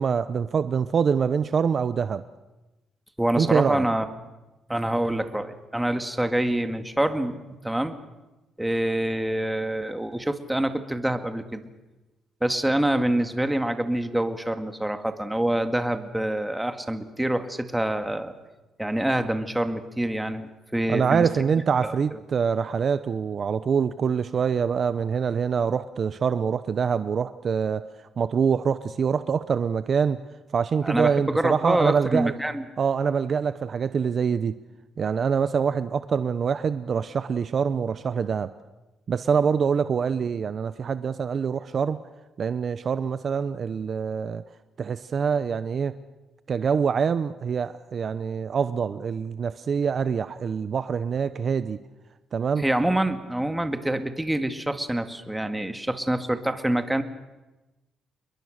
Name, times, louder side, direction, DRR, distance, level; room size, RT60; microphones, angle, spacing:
voice 1, 0.0-2.2 3.3-3.8 20.9-27.9 28.2-30.2 30.5-32.3 32.8-34.6 35.0-38.5 39.1-42.0 42.4-44.4 44.8-46.0 46.5-51.8 52.3-52.6, right 6 dB, 50° right, 13 dB, 0.8 m, -25 dB
voice 2, 3.2-4.1 4.7-7.9 8.6-11.6 12.4-18.4 18.8-21.3 21.8-22.2 30.8-32.6 52.6-57.0, right 1 dB, 5° right, 7 dB, 2.1 m, -26 dB
28.0 x 22.0 x 6.6 m, 1.1 s
cardioid pair, 90°, 0 cm